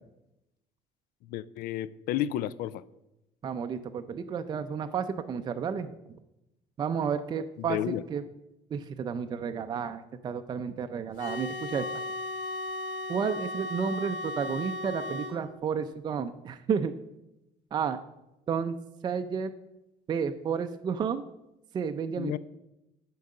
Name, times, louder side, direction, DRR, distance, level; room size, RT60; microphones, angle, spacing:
voice 1, 1.3-2.8 7.6-8.0 22.2-22.4, left 12 dB, 90° left, 19 dB, 0.4 m, -32 dB
voice 2, 3.4-5.9 6.8-8.2 8.7-11.9 13.1-16.9 17.7-18.0 18.5-18.8 19.0-19.5 20.1-21.2 21.7-22.4, right 6 dB, 30° right, 8 dB, 0.4 m, -31 dB
sound 1, 11.2-15.4, left 2 dB, 70° left, 3.8 m, -35 dB
10.5 x 4.6 x 6.5 m, 0.91 s
cardioid pair, 160°, 15 cm